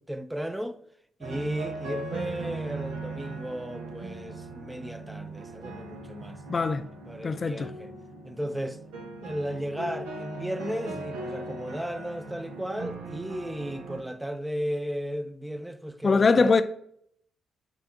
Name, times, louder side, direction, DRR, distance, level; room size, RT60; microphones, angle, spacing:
voice 1, 0.1-0.8 1.2-6.4 7.1-7.9 8.2-8.8 9.2-16.6, equal, 10° right, 0.5 m, -35 dB
sound 1, 1.2-14.0, right 2 dB, 80° right, 0.9 m, -39 dB
voice 2, 6.5-6.8 7.2-7.7 16.0-16.6, left 4 dB, 45° left, 0.5 m, -22 dB
6.8 x 2.6 x 5.6 m
hypercardioid pair, 45°, 0 cm